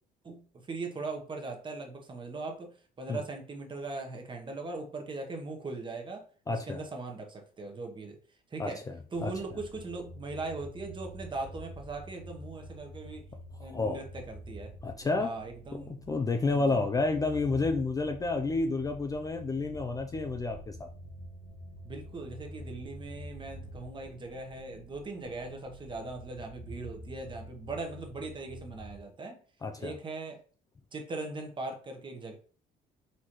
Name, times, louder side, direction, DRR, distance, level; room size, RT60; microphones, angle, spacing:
voice 1, 0.2-6.2 6.5-8.2 8.5-8.8 9.1-13.2 13.6-14.7 15.2-16.0 16.5-16.8 21.8-29.4 29.8-30.4 30.9-32.4, right 3 dB, 30° right, 3 dB, 1.0 m, -40 dB
voice 2, 6.5-6.8 8.6-9.0 9.2-9.3 13.7-14.0 14.8-15.3 15.7-20.9 29.6-29.9, left 3 dB, 20° left, 5 dB, 0.4 m, -30 dB
sound 1, 9.1-29.0, equal, 70° left, 1.4 m, -47 dB
4.3 x 3.9 x 3.0 m, 0.42 s
cardioid pair, 110°, 17 cm